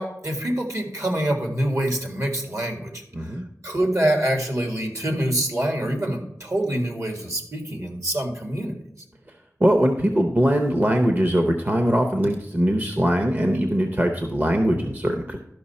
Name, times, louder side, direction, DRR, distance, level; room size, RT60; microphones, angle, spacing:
voice 1, 0.0-8.8, right 1 dB, 60° right, 2 dB, 1.8 m, -26 dB
voice 2, 3.1-3.5 9.6-15.4, equal, 30° right, 5 dB, 0.8 m, -21 dB
12.5 x 5.6 x 4.2 m, 0.82 s
wide cardioid pair, 70°, 6 cm